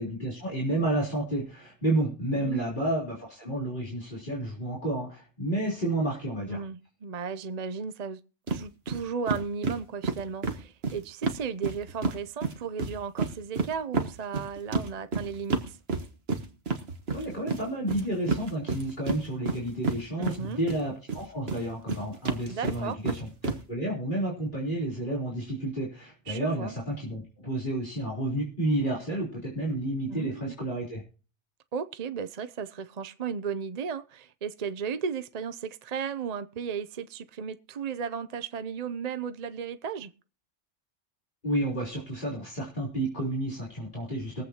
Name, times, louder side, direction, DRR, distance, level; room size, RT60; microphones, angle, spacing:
voice 1, 0.0-6.6 17.1-31.0 41.4-44.4, right 1 dB, 45° left, 3.7 m, -31 dB
voice 2, 2.3-2.7 6.5-8.2 8.5-15.8 20.2-20.6 22.5-23.0 26.3-26.7 30.1-30.5 31.7-40.1, right 6 dB, 45° right, 0.6 m, -35 dB
sound 1, 8.5-8.6 8.9-9.0 9.3-12.2 12.4-20.8 21.1-23.6, right 3 dB, 60° right, 1.6 m, -30 dB
22.5 x 8.1 x 2.9 m
omnidirectional pair, 1.2 m